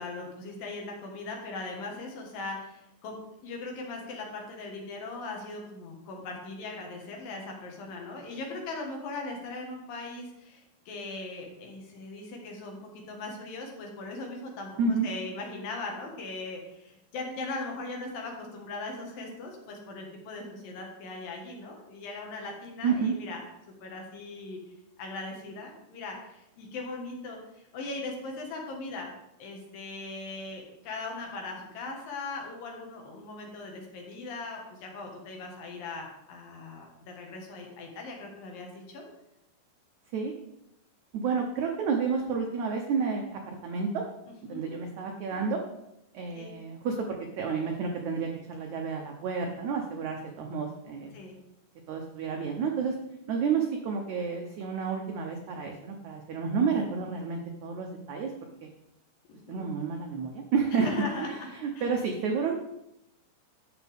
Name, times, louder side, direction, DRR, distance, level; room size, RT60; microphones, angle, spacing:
voice 1, 0.0-23.5 23.8-24.6 25.0-29.1 29.4-39.1 44.3-44.7 46.3-46.5 51.1-51.4 59.3-59.7 60.7-61.5 61.8-61.9, left 3 dB, 65° left, 1 dB, 3.1 m, -39 dB
voice 2, 22.8-23.1 40.1-40.3 41.1-44.0 44.5-45.6 46.1-47.1 47.3-51.1 51.9-52.9 53.3-58.3 58.6-58.7 59.5-61.0 61.6-62.5, right 5 dB, 90° right, 2 dB, 1.6 m, -30 dB
11.0 x 7.2 x 3.5 m, 0.85 s
omnidirectional pair, 4.5 m